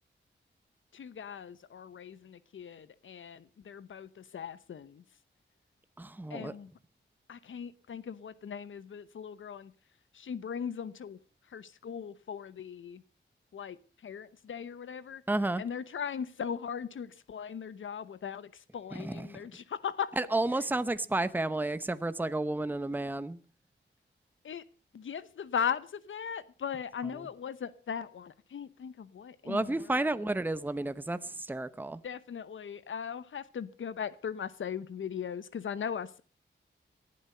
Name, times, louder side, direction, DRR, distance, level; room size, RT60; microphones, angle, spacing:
voice 1, 0.9-5.0 6.3-6.7 7.3-9.7 10.1-11.2 11.5-13.0 13.5-13.8 14.0-15.2 15.6-20.1 24.4-24.6 24.9-30.3 32.0-36.2, left 7 dB, 80° left, 1.0 m, -38 dB
voice 2, 6.0-6.5 15.3-15.6 18.9-19.4 20.2-23.4 29.4-32.0, right 2 dB, 10° right, 0.8 m, -31 dB
19.0 x 12.0 x 5.5 m
wide cardioid pair, 125°, 20 cm